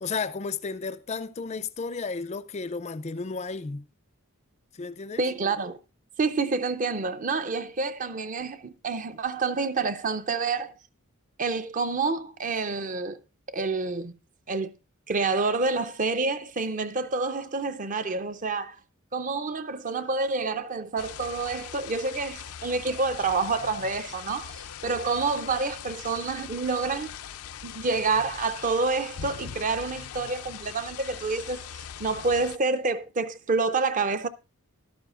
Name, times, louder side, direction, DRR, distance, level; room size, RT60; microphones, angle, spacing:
voice 1, 0.0-3.8 4.7-5.3, left 4 dB, 30° left, 0.4 m, -33 dB
voice 2, 5.2-5.8 6.2-10.7 11.4-13.2 13.5-14.1 14.5-14.7 15.1-18.8 19.1-27.1 27.6-34.3, right 4 dB, 35° right, 0.5 m, -28 dB
sound 1, 21.0-32.6, left 9 dB, 85° left, 0.5 m, -41 dB
14.0 x 12.0 x 2.4 m
head